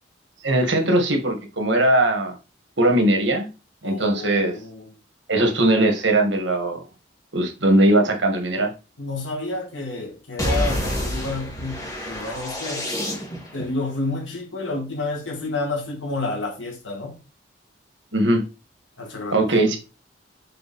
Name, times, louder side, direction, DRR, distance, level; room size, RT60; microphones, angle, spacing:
voice 1, 0.4-2.4 2.8-3.5 3.8-4.5 5.3-6.8 7.3-8.7 18.1-18.4 19.3-19.8, right 1 dB, 75° right, 2.0 m, -19 dB
voice 2, 3.8-4.9 9.0-12.9 13.5-17.1 19.0-19.7, left 2 dB, 85° left, 2.5 m, -30 dB
sound 1, 10.4-13.6, equal, 20° left, 2.3 m, -28 dB
6.7 x 4.1 x 4.3 m
head